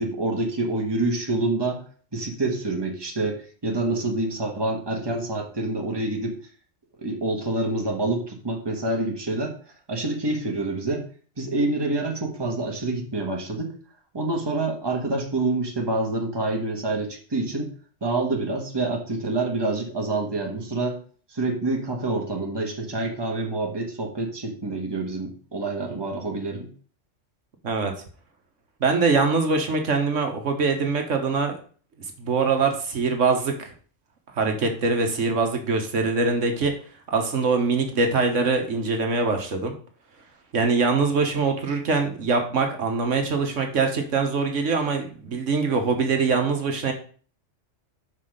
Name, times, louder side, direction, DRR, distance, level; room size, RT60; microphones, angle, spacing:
voice 1, 0.0-1.8 2.1-6.4 7.0-9.5 9.9-11.0 11.4-13.7 14.1-17.7 18.0-21.0 21.3-26.7, right 2 dB, 20° right, 1 dB, 1.4 m, -27 dB
voice 2, 27.6-27.9 28.8-31.5 32.2-33.7 34.3-36.7 37.1-39.7 40.5-46.9, right 4 dB, 75° right, 4 dB, 1.5 m, -23 dB
5.7 x 4.8 x 6.5 m, 0.43 s
omnidirectional pair, 1.3 m